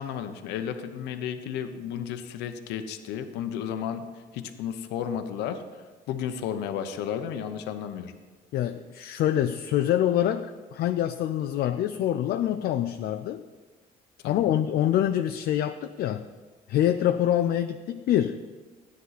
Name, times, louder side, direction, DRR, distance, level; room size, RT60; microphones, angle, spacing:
voice 1, 0.0-4.1 4.3-5.6 6.1-8.1 14.2-14.6, left 8 dB, 85° left, 8 dB, 0.9 m, -33 dB
voice 2, 8.5-13.5 14.2-16.3 16.7-18.4, left 11 dB, 65° left, 7 dB, 0.5 m, -25 dB
14.5 x 9.7 x 4.1 m, 1.3 s
cardioid pair, 110°, 17 cm